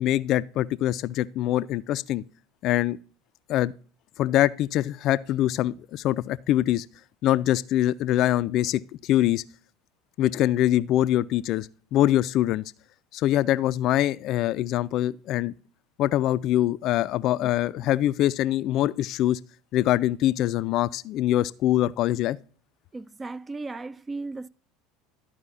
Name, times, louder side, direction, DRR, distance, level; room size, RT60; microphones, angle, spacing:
voice 1, 0.0-2.2 2.6-3.0 3.5-3.7 4.2-6.8 7.2-9.4 10.2-12.6 13.1-15.5 16.0-19.4 19.7-22.4, left 13 dB, 55° left, 0.3 m, -24 dB
voice 2, 22.9-24.5, right 3 dB, 20° right, 0.4 m, -36 dB
13.0 x 4.7 x 4.2 m
hypercardioid pair, 80°, 0 cm